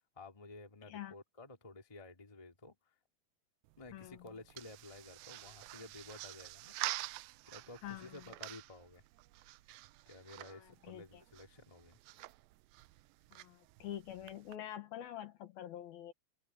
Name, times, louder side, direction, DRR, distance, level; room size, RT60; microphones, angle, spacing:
voice 1, 0.1-2.9 3.8-6.8 7.5-9.0 10.0-12.0, left 2 dB, 10° left, 1.6 m, -53 dB
sound 1, 3.6-14.6, right 19 dB, 85° right, 2.1 m, -48 dB
voice 2, 3.9-4.3 7.8-8.2 10.4-11.0 13.3-16.1, left 11 dB, 70° left, 3.1 m, -46 dB
open air
omnidirectional pair, 4.7 m